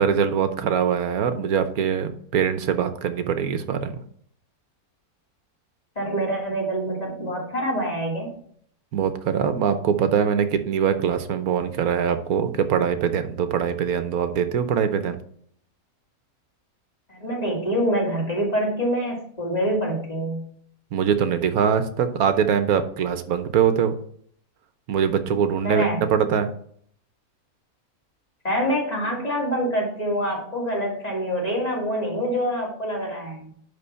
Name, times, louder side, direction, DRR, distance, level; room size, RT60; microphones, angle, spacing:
voice 1, 0.0-4.0 8.9-15.2 20.9-24.0 24.9-26.5, right 7 dB, 85° right, 10 dB, 1.3 m, -23 dB
voice 2, 6.0-8.3 17.1-20.4 25.6-26.0 28.4-33.5, equal, 25° left, -3 dB, 2.9 m, -25 dB
10.5 x 3.8 x 5.6 m, 0.62 s
omnidirectional pair, 1.5 m